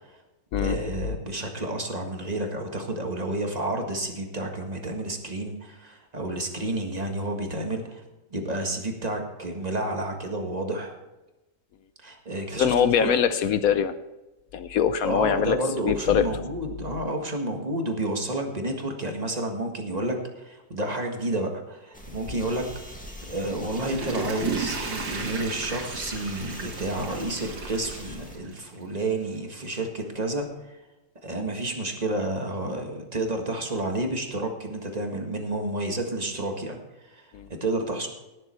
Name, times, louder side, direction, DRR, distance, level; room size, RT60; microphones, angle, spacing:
voice 1, 0.6-8.0 8.3-11.0 12.0-13.1 15.0-22.7 23.2-30.8 31.2-36.8 37.0-38.1, right 1 dB, 25° right, 3 dB, 1.7 m, -30 dB
voice 2, 12.6-13.9 14.5-15.6 15.8-16.3 37.3-37.5, left 8 dB, 65° left, 12 dB, 0.9 m, -22 dB
sound 1, 21.9-28.4, left 1 dB, 5° left, 1.8 m, -42 dB
Water / Toilet flush, 23.5-28.8 29.3-29.4, right 5 dB, 90° right, 2.5 m, -34 dB
17.5 x 7.4 x 4.5 m, 1.0 s
omnidirectional pair, 1.9 m